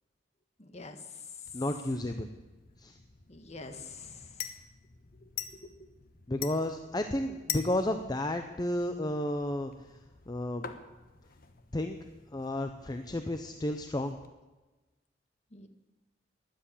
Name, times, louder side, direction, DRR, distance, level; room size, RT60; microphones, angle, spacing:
voice 1, 0.6-1.3 3.3-4.4 5.2-5.7 15.5-15.7, left 3 dB, 40° left, 7 dB, 1.5 m, -46 dB
sound 1, 1.5-14.3, left 9 dB, 55° left, 1.1 m, -46 dB
voice 2, 1.5-2.3 2.8-2.9 6.3-9.7 10.3-10.7 11.7-12.0 12.3-14.2, left 1 dB, 20° left, 7 dB, 0.7 m, -32 dB
13.0 x 11.5 x 8.5 m, 1.2 s
head